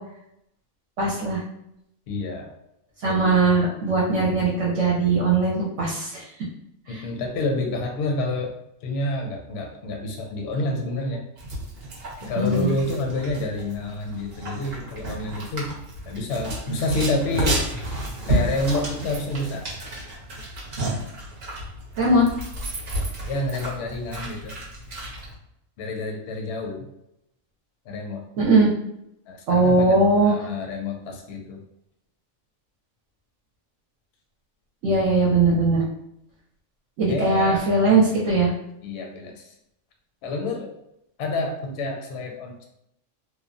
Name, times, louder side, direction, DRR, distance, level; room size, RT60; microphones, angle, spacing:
voice 1, 1.0-1.4 3.0-6.2 6.9-7.0 12.4-12.7 22.0-22.2 28.4-28.7 29.5-30.3 34.8-35.8 37.0-38.5, right 3 dB, 70° right, -4 dB, 0.9 m, -20 dB
voice 2, 2.1-2.5 3.0-3.4 6.9-8.5 8.8-11.2 12.2-15.7 16.1-17.6 18.2-19.7 23.3-24.5 25.8-26.9 27.9-28.2 29.3-31.6 35.5-35.6 37.1-37.6 38.8-39.5 40.2-40.7 41.2-42.6, left 2 dB, 65° left, 2 dB, 0.7 m, -28 dB
sound 1, 11.4-25.3, right 1 dB, 50° right, 0.7 m, -31 dB
3.0 x 2.0 x 2.5 m, 0.81 s
omnidirectional pair, 1.4 m